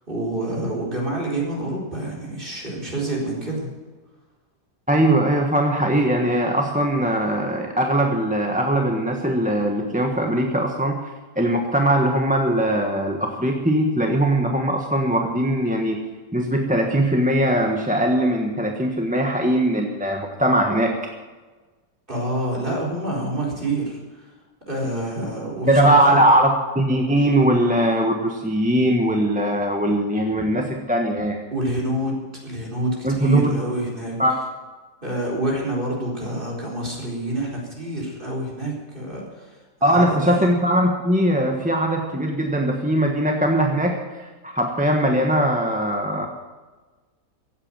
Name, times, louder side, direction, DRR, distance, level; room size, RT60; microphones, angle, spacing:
voice 1, 0.1-3.7 22.1-24.3 24.7-26.2 31.5-34.1 35.0-40.4, right 1 dB, 30° right, -3 dB, 4.4 m, -27 dB
voice 2, 4.9-11.0 11.3-16.0 16.3-20.9 25.7-31.4 33.0-33.6 34.2-34.3 39.8-46.3, right 1 dB, 5° right, 2 dB, 1.1 m, -20 dB
15.5 x 8.7 x 8.9 m, 1.3 s
omnidirectional pair, 1.9 m